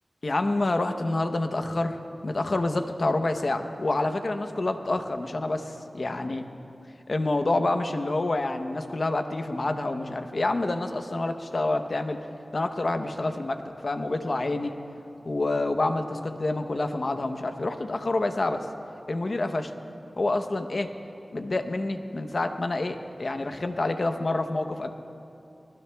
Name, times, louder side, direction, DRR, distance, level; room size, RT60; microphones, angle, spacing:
voice 1, 0.2-6.4 7.1-12.2 12.5-14.8 15.2-18.7 19.1-19.7 20.2-20.9 21.3-24.9, left 2 dB, 55° left, 7 dB, 0.8 m, -28 dB
24.5 x 19.5 x 2.3 m, 2.8 s
wide cardioid pair, 80°, 0 cm